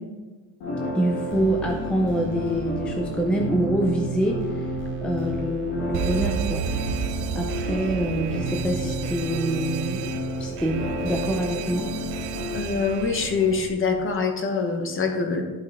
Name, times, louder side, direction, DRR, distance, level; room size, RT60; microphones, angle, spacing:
sound 1, 0.6-12.6, equal, 85° left, 2.3 m, -31 dB
voice 1, 0.9-4.7 5.0-6.6 7.3-10.0 10.4-11.9, right 1 dB, 5° left, 1 dB, 0.4 m, -26 dB
sound 2, 1.3-13.7, right 4 dB, 30° right, 0.7 m, -39 dB
Alarm, 5.9-13.6, right 10 dB, 70° right, 0.5 m, -33 dB
voice 2, 12.5-15.4, left 5 dB, 30° left, 4 dB, 1.0 m, -24 dB
11.5 x 5.5 x 3.5 m, 1.3 s
cardioid pair, 160°, 40 cm